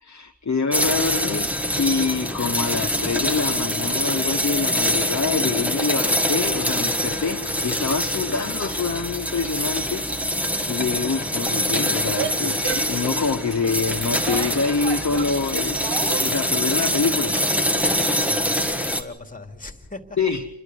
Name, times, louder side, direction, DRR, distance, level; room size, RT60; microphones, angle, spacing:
voice 1, 0.0-10.0 10.7-15.8 16.2-17.7 20.2-20.5, left 5 dB, 40° left, 1.0 m, -26 dB
sound 1, 0.7-19.0, equal, 5° right, 1.6 m, -24 dB
Female speech woman speaking / Yell, 12.0-16.4, right 8 dB, 70° right, 0.8 m, -33 dB
voice 2, 18.1-20.2, left 3 dB, 20° left, 2.5 m, -39 dB
28.0 x 12.0 x 9.3 m
wide cardioid pair, 70°, 44 cm